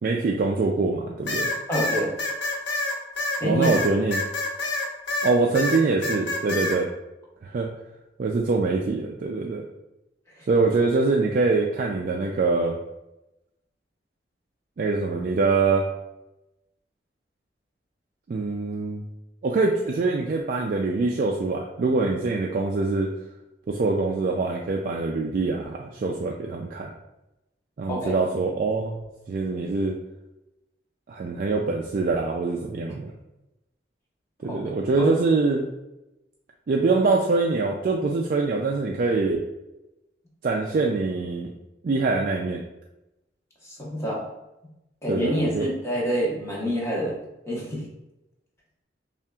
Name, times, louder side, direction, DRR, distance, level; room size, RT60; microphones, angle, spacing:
voice 1, 0.0-1.5 3.4-4.2 5.2-6.9 7.4-7.7 8.2-9.7 10.5-12.8 14.8-15.9 18.3-19.0 19.4-23.1 23.7-26.9 27.8-29.0 29.3-30.0 31.1-33.1 34.4-35.7 36.7-39.4 40.4-41.5 41.8-42.6 45.1-45.7, right 3 dB, 50° right, 0 dB, 0.3 m, -24 dB
sound 1, 1.3-5.3 5.5-6.8, left 2 dB, 85° left, 0.7 m, -27 dB
voice 2, 1.7-2.1 3.4-3.7 10.4-10.5 27.9-28.1 34.4-34.6 35.0-35.1 43.6-44.2 45.0-47.2 47.5-47.8, equal, 15° left, -5 dB, 1.0 m, -27 dB
5.5 x 2.5 x 2.3 m, 0.95 s
head